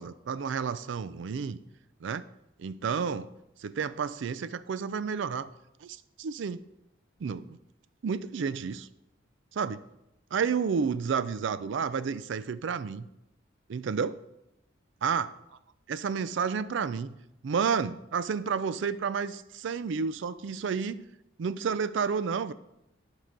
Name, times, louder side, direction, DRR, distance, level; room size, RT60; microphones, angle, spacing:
voice 1, 0.0-1.6 2.0-2.2 2.6-3.3 3.6-5.5 5.8-6.6 7.2-7.6 8.0-8.9 9.5-9.8 10.3-13.1 13.7-14.2 15.0-15.3 15.9-17.2 17.4-21.0 21.4-22.5, right 6 dB, 65° right, 15 dB, 0.4 m, -31 dB
11.5 x 4.9 x 3.9 m, 0.85 s
head